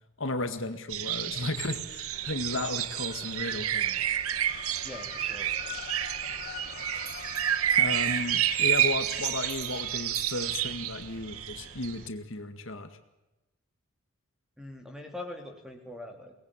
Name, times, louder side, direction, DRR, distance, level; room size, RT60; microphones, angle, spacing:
voice 1, 0.2-4.2 7.8-12.9, left 2 dB, 65° left, 8 dB, 2.0 m, -34 dB
sound 1, 0.9-12.1, right 11 dB, 90° right, 0.9 m, -30 dB
sound 2, 2.1-12.1, left 8 dB, 45° left, 1.5 m, -44 dB
voice 2, 4.8-5.5 14.6-16.3, left 2 dB, 5° right, 4 dB, 3.6 m, -42 dB
Bell, 5.4-6.7 7.0-11.4, right 6 dB, 45° right, 4.4 m, -50 dB
24.0 x 19.5 x 9.1 m, 0.97 s
head